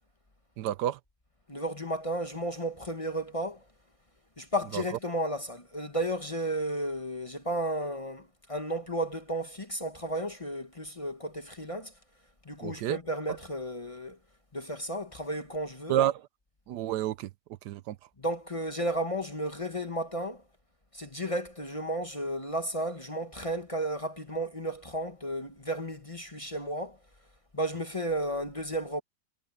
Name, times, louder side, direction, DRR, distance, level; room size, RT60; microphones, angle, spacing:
voice 1, 0.6-1.0 4.7-4.8 12.6-13.0 15.9-16.2 16.7-17.3 17.7-18.0, right 12 dB, 75° right, 1.2 m, -29 dB
voice 2, 1.5-3.6 4.4-11.9 12.4-14.2 14.5-16.0 18.2-20.4 20.9-27.0 27.5-29.0, right 1 dB, 20° left, 1.2 m, -33 dB
omnidirectional pair, 1.8 m